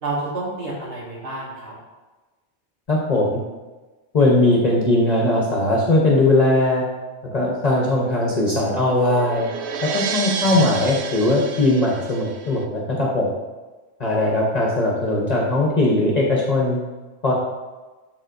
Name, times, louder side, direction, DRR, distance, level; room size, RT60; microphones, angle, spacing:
voice 1, 0.0-1.7 10.4-11.1, right 2 dB, 60° right, -7 dB, 1.6 m, -30 dB
voice 2, 2.9-3.4 4.1-6.8 7.3-9.5 9.8-13.3 14.0-16.8 17.2-17.3, left 2 dB, 40° left, -3 dB, 1.0 m, -19 dB
sound 1, 8.1-12.6, right 6 dB, 75° right, 0.9 m, -31 dB
11.5 x 3.8 x 2.6 m, 1.2 s
omnidirectional pair, 1.1 m